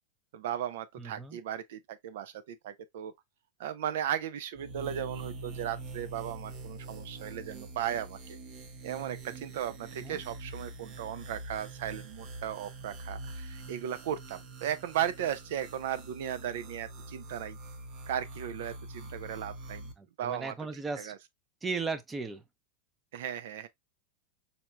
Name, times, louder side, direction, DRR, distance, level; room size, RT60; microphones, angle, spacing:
voice 1, 0.3-3.1 3.6-8.4 8.8-17.6 18.1-19.9 20.2-20.5 21.0-21.2 23.1-23.7, right 10 dB, 70° right, 0.5 m, -36 dB
voice 2, 1.0-1.4 10.0-10.2 20.0-21.1 21.6-22.4, right 4 dB, 20° right, 0.7 m, -36 dB
sound 1, 4.5-19.9, right 2 dB, 45° right, 0.9 m, -44 dB
4.3 x 3.3 x 2.2 m
hypercardioid pair, 100°, 0 cm